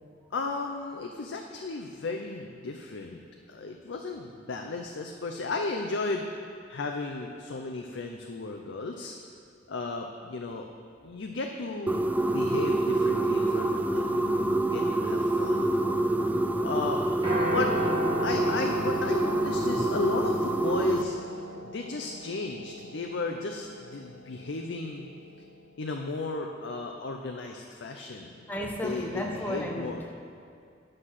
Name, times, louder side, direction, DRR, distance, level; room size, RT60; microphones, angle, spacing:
voice 1, 0.3-3.2 3.5-6.3 6.7-9.2 9.7-10.7 11.0-16.0 16.6-17.0 17.4-17.7 18.2-21.2 21.6-25.1 25.8-28.5 28.8-30.0, left 3 dB, 90° left, 2 dB, 0.6 m, -34 dB
sound 1, 11.9-21.0, right 2 dB, 10° right, 0.4 m, -26 dB
Piano, 17.2-25.5, equal, 25° right, 1.8 m, -36 dB
voice 2, 28.5-30.1, left 1 dB, 10° left, 0 dB, 1.0 m, -33 dB
9.8 x 6.5 x 5.7 m, 2.3 s
head